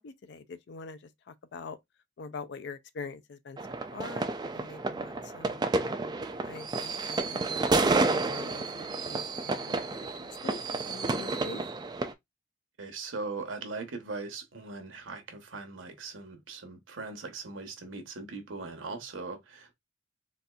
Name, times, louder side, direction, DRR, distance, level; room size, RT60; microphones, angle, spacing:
voice 1, 0.0-1.8 2.2-5.7 6.4-11.6, left 4 dB, 60° left, 0.4 m, -44 dB
sound 1, 3.6-12.1, right 3 dB, 20° right, 0.3 m, -30 dB
voice 2, 12.8-19.7, right 3 dB, 80° right, 0.9 m, -40 dB
4.1 x 2.5 x 2.3 m
head